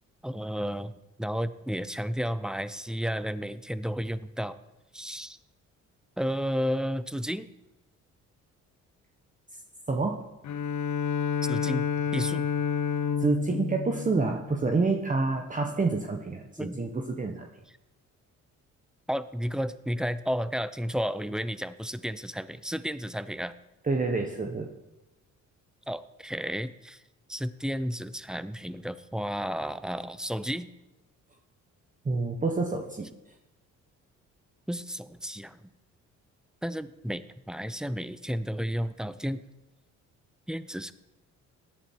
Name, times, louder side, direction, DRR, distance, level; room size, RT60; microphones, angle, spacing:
voice 1, 0.2-0.9 1.2-4.6 4.9-5.4 6.2-7.5 11.5-11.9 12.1-12.5 16.6-16.8 19.1-23.5 25.9-27.0 27.3-30.7 34.7-35.6 36.6-39.4 40.5-40.9, equal, ahead, 13 dB, 0.8 m, -32 dB
voice 2, 9.9-10.2 13.2-17.5 23.8-24.7 32.0-33.1, right 3 dB, 25° right, 2 dB, 1.4 m, -28 dB
Bowed string instrument, 10.4-15.1, left 7 dB, 70° left, 1.0 m, -30 dB
17.5 x 11.5 x 4.7 m, 0.98 s
cardioid pair, 90°, 30 cm